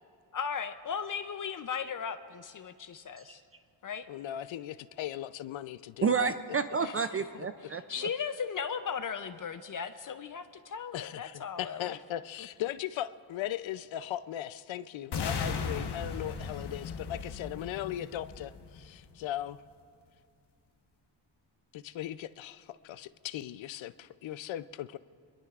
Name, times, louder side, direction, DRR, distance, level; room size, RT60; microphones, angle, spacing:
voice 1, 0.3-3.4 3.8-4.1 6.8-6.9 7.9-12.0, left 6 dB, 45° left, 10 dB, 0.6 m, -37 dB
voice 2, 4.1-6.3 10.9-19.6 21.7-25.0, left 12 dB, 90° left, 14 dB, 0.6 m, -38 dB
voice 3, 6.0-8.1, right 5 dB, 35° right, 10 dB, 0.4 m, -30 dB
sound 1, 15.1-19.1, left 5 dB, 60° left, 1.2 m, -37 dB
25.0 x 21.5 x 2.4 m, 2.3 s
wide cardioid pair, 135°, 45 cm